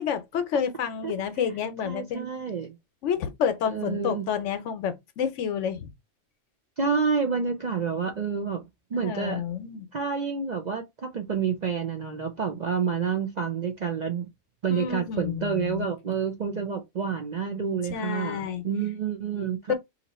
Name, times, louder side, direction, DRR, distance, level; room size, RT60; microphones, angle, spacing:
voice 1, 0.0-2.3 3.0-5.9 8.9-9.9 14.7-15.9 17.9-18.7 19.7-19.8, left 7 dB, 70° left, 1.0 m, -29 dB
voice 2, 1.8-2.7 3.7-4.3 6.8-8.6 8.9-9.4 9.9-14.3 14.6-19.7, right 6 dB, 50° right, 0.5 m, -29 dB
2.8 x 2.6 x 4.1 m
omnidirectional pair, 1.3 m